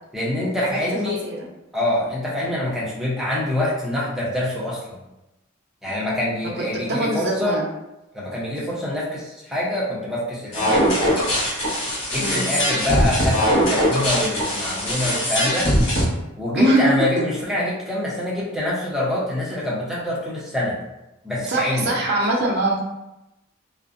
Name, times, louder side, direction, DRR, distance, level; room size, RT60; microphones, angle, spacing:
voice 1, 0.1-1.2 1.7-5.0 5.8-7.6 8.1-11.3 12.1-15.7 16.4-20.8 21.2-21.9, left 1 dB, ahead, -7 dB, 0.6 m, -25 dB
voice 2, 6.7-7.7 12.2-12.5 16.5-16.8 21.5-22.8, right 1 dB, 50° right, -3 dB, 0.6 m, -22 dB
sound 1, 10.5-16.0, equal, 60° left, 0.9 m, -21 dB
2.4 x 2.0 x 2.4 m, 0.94 s
head